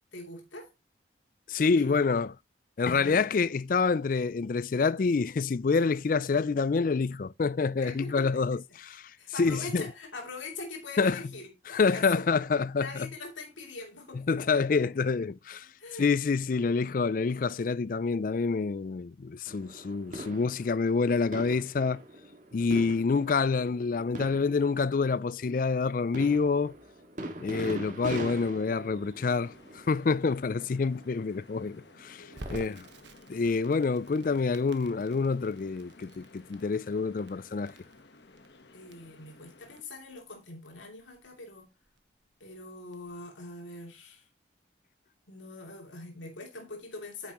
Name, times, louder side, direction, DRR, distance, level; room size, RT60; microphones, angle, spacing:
voice 1, 0.1-0.7 1.6-2.2 7.8-8.6 9.2-12.3 12.8-14.2 14.8-14.9 15.6-16.2 16.5-16.6 32.2-32.8 37.7-37.9 38.7-41.7 42.4-44.3 45.3-47.3, left 3 dB, 85° left, 2.7 m, -43 dB
voice 2, 1.5-2.3 2.8-9.8 11.0-11.2 11.7-13.1 14.3-15.7 16.0-22.0 22.5-26.7 27.4-32.9 33.3-37.7, left 4 dB, 45° left, 0.4 m, -27 dB
sound 1, 19.4-33.0 33.6-33.7 34.7-35.1 36.2-36.3, right 1 dB, 40° right, 2.0 m, -43 dB
sound 2, 29.2-39.8, left 2 dB, 65° left, 1.2 m, -56 dB
Crackle, 32.4-43.1, right 1 dB, 70° right, 1.2 m, -51 dB
9.7 x 6.9 x 3.0 m
head